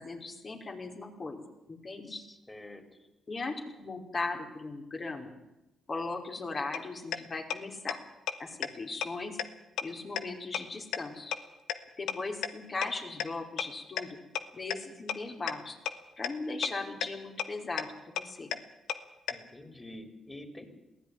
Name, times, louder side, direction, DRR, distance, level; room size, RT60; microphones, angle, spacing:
voice 1, 0.0-1.4 1.7-2.2 3.3-5.3 5.9-8.0 8.4-9.4 9.8-11.3 12.0-14.2 14.5-15.8 16.2-18.5, left 3 dB, 45° left, 3 dB, 5.2 m, -38 dB
voice 2, 2.1-3.1 19.3-20.7, left 1 dB, 15° left, 7 dB, 4.8 m, -48 dB
sound 1, 6.7-6.8 7.1-7.2 7.5-7.6 7.9-8.0 8.3-8.4 8.6-8.7 9.0-9.1 9.4-9.5 9.8-9.9 10.2-10.3 10.5-10.6 10.9-11.0 11.3-11.4 11.7-11.8 12.1-12.2 12.4-12.5 12.8-12.9 13.2-13.3 13.6-13.7 14.0-14.1 14.4-14.5 14.7-14.8 15.1-15.2 15.5-15.6 15.9-16.0 16.2-16.3 16.6-16.7 17.0-17.1 17.4-17.5 17.8-17.9 18.2-18.3 18.5-18.6 18.9-19.0 19.3-19.4, left 10 dB, 85° left, 1.3 m, -30 dB
21.5 x 16.5 x 9.9 m, 0.96 s
supercardioid pair, 60°, 0 cm